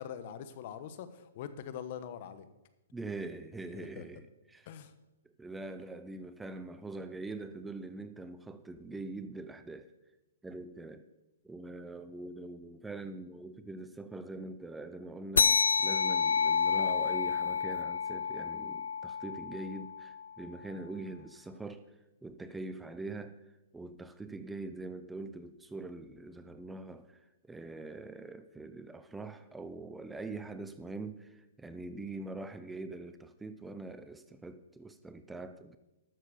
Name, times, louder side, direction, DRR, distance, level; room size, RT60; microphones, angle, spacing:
voice 1, 0.0-2.5 3.7-4.0 4.7-4.9, left 9 dB, 50° left, 12 dB, 1.1 m, -43 dB
voice 2, 2.9-4.7 5.2-9.9 10.4-11.1 11.4-21.9 22.2-35.8, right 2 dB, 5° right, 10 dB, 0.6 m, -43 dB
sound 1, 15.4-20.3, left 6 dB, 85° left, 0.4 m, -29 dB
12.0 x 7.3 x 6.6 m, 1.0 s
hypercardioid pair, 135°, 0 cm